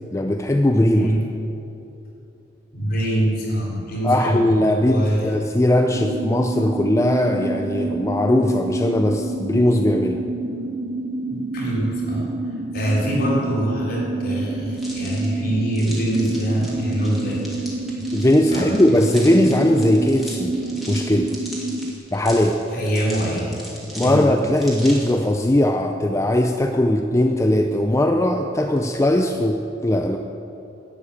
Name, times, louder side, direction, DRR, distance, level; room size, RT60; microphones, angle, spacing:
voice 1, 0.1-1.1 4.0-10.2 18.1-20.5 20.9-21.3 22.1-22.6 24.0-30.2, left 1 dB, 15° left, 4 dB, 0.5 m, -19 dB
voice 2, 0.9-1.2 2.7-4.6 4.8-5.3 11.3-12.3 12.7-17.4 18.4-18.8 22.7-23.6 24.0-24.3, right 1 dB, 55° left, -4 dB, 3.8 m, -24 dB
sound 1, 5.9-21.9, right 2 dB, 50° right, 0.6 m, -28 dB
sound 2, 14.7-25.3, equal, ahead, 2.6 m, -39 dB
11.5 x 8.4 x 8.6 m, 2.9 s
head